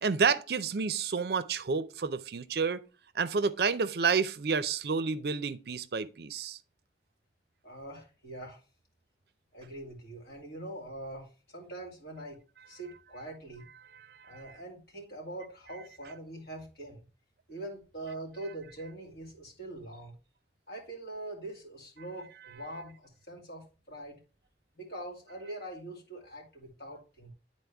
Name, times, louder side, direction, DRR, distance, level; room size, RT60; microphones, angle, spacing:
voice 1, 0.0-2.8 3.1-6.6 13.9-14.4, right 5 dB, 60° right, 0.5 m, -30 dB
voice 2, 7.6-8.6 9.5-12.4 12.7-13.6 14.2-17.1 17.5-20.1 20.7-24.2 24.7-27.3, right 1 dB, 60° left, 2.6 m, -43 dB
10.0 x 4.2 x 3.4 m
head